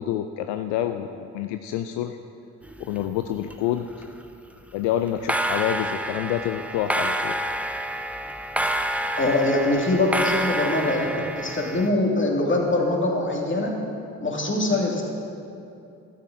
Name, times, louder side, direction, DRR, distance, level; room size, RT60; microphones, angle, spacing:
voice 1, 0.0-2.2 2.8-3.9 4.7-7.3, left 11 dB, 70° left, 8 dB, 0.6 m, -27 dB
sound 1, 2.6-3.5 3.8-4.2 5.1-11.9, right 1 dB, 5° right, 0.9 m, -28 dB
voice 2, 9.2-11.1 11.4-13.7 14.2-15.0, left 2 dB, 25° left, -1 dB, 2.9 m, -23 dB
12.5 x 10.5 x 6.2 m, 2.7 s
hypercardioid pair, 45°, 43 cm